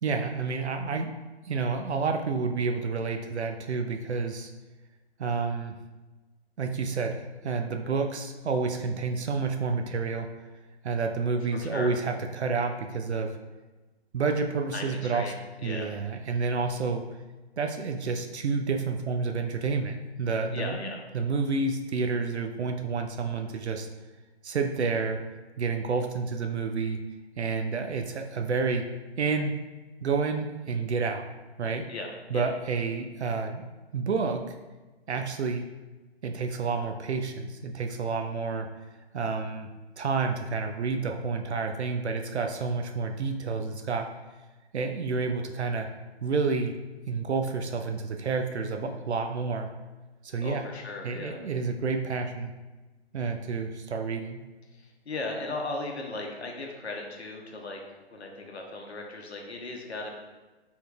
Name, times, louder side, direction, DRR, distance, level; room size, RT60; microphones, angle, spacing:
voice 1, 0.0-1.1 1.4-4.5 5.2-5.8 6.6-10.3 10.8-13.4 14.1-15.3 15.6-17.0 17.6-23.9 24.4-25.2 25.6-27.0 27.4-28.9 29.2-29.6 30.0-31.2 31.6-31.9 32.3-33.6 33.9-34.5 35.1-35.7 36.2-38.7 39.1-39.7 40.0-44.1 44.7-45.9 46.2-46.7 47.1-49.7 50.2-50.6 51.0-52.5 53.1-54.4, right 4 dB, 80° right, 5 dB, 0.5 m, -29 dB
voice 2, 11.5-11.9 14.7-15.4 15.6-15.9 20.5-21.0 31.9-32.5 50.4-51.4 54.7-57.8 58.1-60.1, left 2 dB, 75° left, 1 dB, 0.9 m, -37 dB
4.4 x 3.6 x 2.3 m, 1.2 s
figure-of-eight pair, 135°, 33 cm